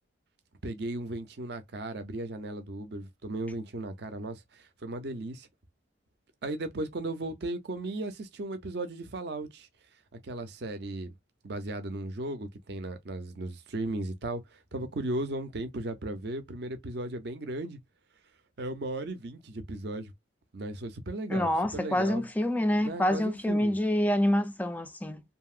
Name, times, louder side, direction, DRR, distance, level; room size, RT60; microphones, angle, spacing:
voice 1, 0.6-5.5 6.4-9.7 10.2-11.1 11.4-17.8 18.6-20.1 20.5-22.2 22.8-23.7, right 2 dB, 55° right, 0.5 m, -36 dB
voice 2, 21.3-25.2, left 1 dB, 10° left, 0.3 m, -27 dB
2.8 x 2.7 x 2.3 m
head